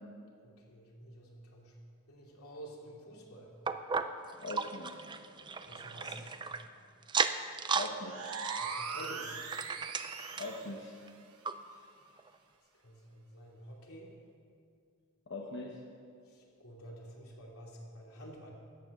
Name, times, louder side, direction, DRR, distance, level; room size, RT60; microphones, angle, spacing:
voice 1, 0.4-1.7 2.1-3.5 5.7-6.6 8.6-9.4 11.6-11.9 12.8-14.1 16.3-18.5, right 1 dB, 90° left, -2 dB, 2.7 m, -50 dB
sound 1, 3.7-6.6 7.0-7.9 8.2-10.6 11.1-11.2 11.4-11.5 12.2-12.3, right 5 dB, 20° right, 0.4 m, -35 dB
voice 2, 4.4-5.0 6.0-6.3 7.7-8.5 10.4-11.1 15.3-15.8, left 2 dB, 55° left, 0 dB, 1.0 m, -42 dB
sound 2, 8.0-10.7, right 5 dB, 85° right, 1.1 m, -40 dB
13.5 x 8.8 x 6.6 m, 2.3 s
head